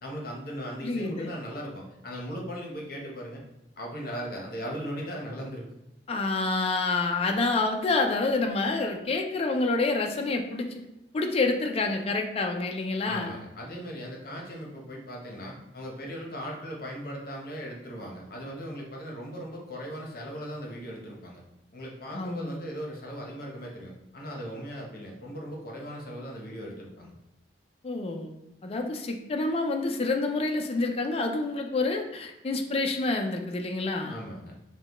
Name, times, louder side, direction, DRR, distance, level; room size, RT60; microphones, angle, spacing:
voice 1, 0.0-3.4 3.8-5.6 13.0-21.4 21.7-27.1 34.1-34.5, equal, 60° left, -1 dB, 0.9 m, -38 dB
voice 2, 0.8-1.3 6.1-10.8 11.1-13.4 22.1-22.6 27.8-28.3 28.6-34.1, left 3 dB, 35° left, 3 dB, 0.4 m, -28 dB
5.6 x 2.2 x 3.0 m, 0.85 s
head